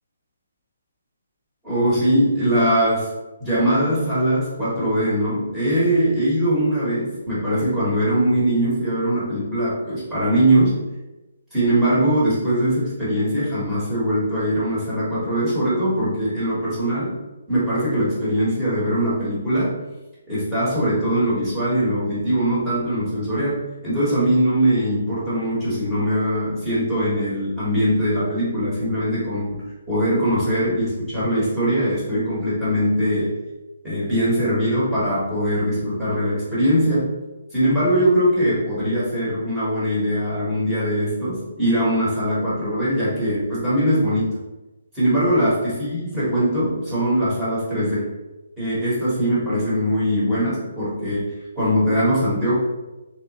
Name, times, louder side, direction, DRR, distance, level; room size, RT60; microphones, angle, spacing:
voice 1, 1.6-3.1 3.4-10.8 11.5-17.2 17.5-19.8 20.3-33.4 33.8-37.1 37.5-44.4 44.9-48.1 48.6-52.6, equal, 10° right, -10 dB, 1.2 m, -21 dB
3.4 x 2.8 x 2.9 m, 1.1 s
hypercardioid pair, 170°, 0 cm